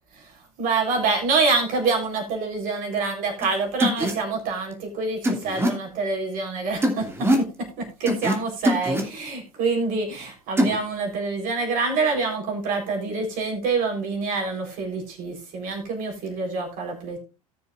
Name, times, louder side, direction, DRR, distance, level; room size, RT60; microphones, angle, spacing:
voice 1, 0.6-7.5 7.8-17.2, right 4 dB, 45° right, 2 dB, 4.0 m, -26 dB
sound 1, 3.4-3.5 3.8-4.1 5.2-5.7 6.8-7.5 8.1-8.4 8.6-9.0 10.6-10.8, equal, 10° right, 2.4 m, -22 dB
18.0 x 6.9 x 2.5 m, 0.29 s
figure-of-eight pair, 75°, 19 cm